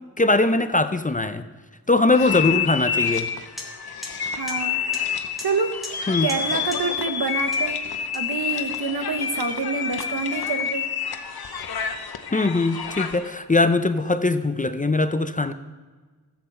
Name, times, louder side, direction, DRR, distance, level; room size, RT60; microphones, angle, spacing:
voice 1, 0.2-1.4 1.9-3.3 6.1-6.3 12.3-15.5, left 2 dB, 20° left, 11 dB, 0.4 m, -21 dB
sound 1, 2.1-13.3, left 7 dB, 85° left, 0.8 m, -28 dB
sound 2, 3.1-3.2 3.6-3.7 4.0-4.1 4.5-4.6 4.9-5.0 5.4-5.5 5.8-6.0 6.3-6.4 6.7-6.8 7.5-7.7 8.1-9.2, left 2 dB, ahead, 2.1 m, -38 dB
voice 2, 4.4-4.8 5.4-5.7 6.2-7.8 8.1-10.8, right 4 dB, 75° right, 8 dB, 1.0 m, -27 dB
13.5 x 7.8 x 4.3 m, 1.4 s
wide cardioid pair, 100°, 36 cm